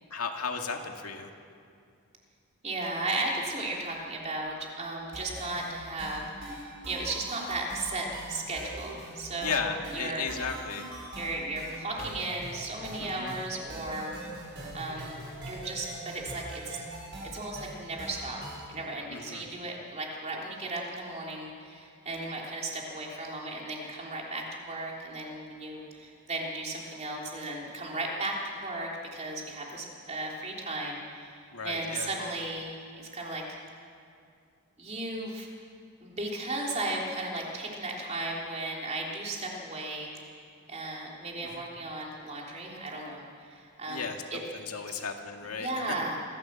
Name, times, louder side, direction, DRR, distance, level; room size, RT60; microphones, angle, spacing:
voice 1, 0.1-1.3 9.4-10.9 13.0-13.4 19.1-19.5 31.5-32.1 41.4-41.6 43.9-46.0, left 5 dB, 80° left, 3 dB, 2.0 m, -35 dB
voice 2, 2.6-10.5 11.2-14.1 14.7-15.2 15.4-16.8 17.3-18.4 18.7-28.3 28.6-33.4 34.8-35.5 36.0-40.1 40.7-44.4 45.5-46.2, right 2 dB, 30° right, -2 dB, 3.4 m, -35 dB
sound 1, 5.1-18.7, right 1 dB, 55° right, 7.5 m, -42 dB
25.5 x 15.0 x 7.5 m, 2.3 s
head